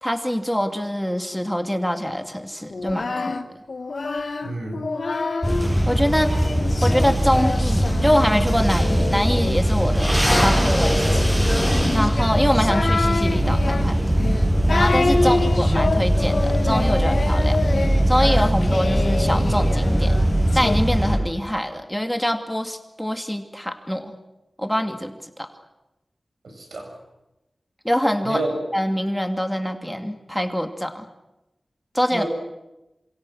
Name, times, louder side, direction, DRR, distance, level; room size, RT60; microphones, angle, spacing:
voice 1, 0.0-3.4 5.9-6.4 6.8-11.3 11.9-14.0 14.7-17.6 18.1-20.2 20.5-24.1 24.6-25.5 27.8-28.4 28.7-31.0 31.9-32.2, equal, 5° left, 5 dB, 2.6 m, -24 dB
Singing, 2.7-5.7 6.3-20.8, left 3 dB, 70° left, 1.6 m, -27 dB
voice 2, 4.4-4.9 15.2-15.4 26.4-26.9 28.2-28.5 32.1-32.3, right 2 dB, 90° right, 2 dB, 7.0 m, -29 dB
sound 1, 5.4-21.2, equal, 15° right, 7.6 m, -20 dB
27.5 x 26.5 x 6.5 m, 0.97 s
wide cardioid pair, 50°, 0 cm